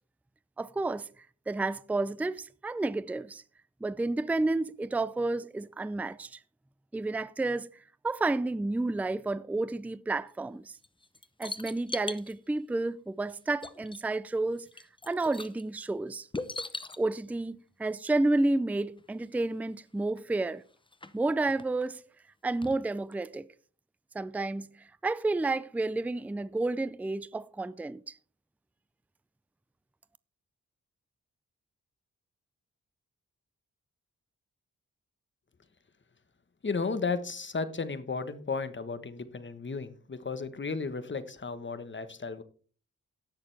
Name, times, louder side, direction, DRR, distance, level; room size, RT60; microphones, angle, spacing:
voice 1, 0.6-1.1 1.5-3.4 3.8-6.4 6.9-7.7 8.0-10.7 11.4-14.7 15.1-16.3 17.0-20.6 21.1-22.0 22.4-23.5 24.1-24.7 25.0-28.0, right 2 dB, 5° right, 0.4 m, -30 dB
sound 1, 10.8-12.3 13.3-13.4 13.6-14.2 14.5-15.6 16.3-17.0 19.0-19.1 19.3-19.4 20.1-20.2 20.7-21.6 22.6-22.8 23.1-23.2, left 2 dB, 15° left, 0.8 m, -40 dB
voice 2, 36.6-42.4, left 4 dB, 35° left, 1.2 m, -34 dB
18.0 x 6.7 x 3.4 m
cardioid pair, 75°, 31 cm